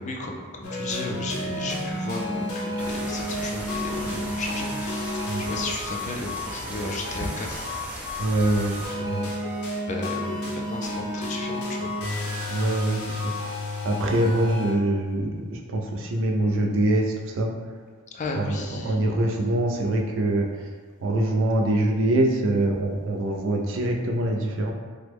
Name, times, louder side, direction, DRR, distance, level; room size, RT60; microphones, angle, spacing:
voice 1, 0.0-7.6 9.8-12.0 18.1-19.1, left 2 dB, 35° left, 1 dB, 0.3 m, -34 dB
sound 1, 0.6-14.7, left 1 dB, 80° left, 0.7 m, -31 dB
sound 2, 2.8-8.9, equal, 5° right, 0.7 m, -37 dB
voice 2, 8.2-9.3 12.5-17.5 18.3-18.6 18.8-20.7 21.0-24.7, right 1 dB, 60° right, 1 dB, 0.4 m, -24 dB
3.4 x 2.0 x 3.4 m, 1.5 s
head